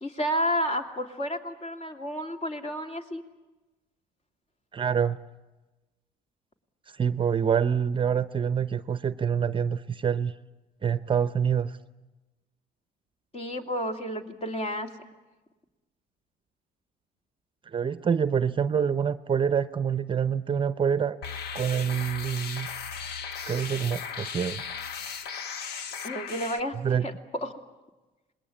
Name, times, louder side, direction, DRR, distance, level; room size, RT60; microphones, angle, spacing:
voice 1, 0.0-3.2 13.3-14.9 26.0-26.8 27.0-27.5, equal, 35° left, 5 dB, 2.8 m, -31 dB
voice 2, 4.7-5.2 6.9-10.3 10.8-11.7 17.7-21.2 21.5-22.7 23.5-24.6 26.8-27.1, right 7 dB, 30° right, 13 dB, 0.7 m, -26 dB
sound 1, 21.2-26.6, left 6 dB, 75° left, 1.2 m, -36 dB
27.0 x 20.5 x 8.6 m, 1.1 s
cardioid pair, 110°, 17 cm